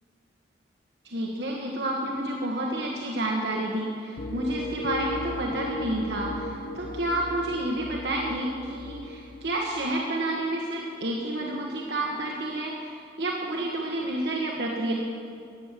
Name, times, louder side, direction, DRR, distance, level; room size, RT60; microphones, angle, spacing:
voice 1, 1.0-14.9, right 1 dB, 70° right, -2 dB, 1.4 m, -30 dB
sound 1, 4.2-9.5, left 2 dB, 65° left, 0.9 m, -36 dB
15.0 x 9.5 x 6.8 m, 2.4 s
head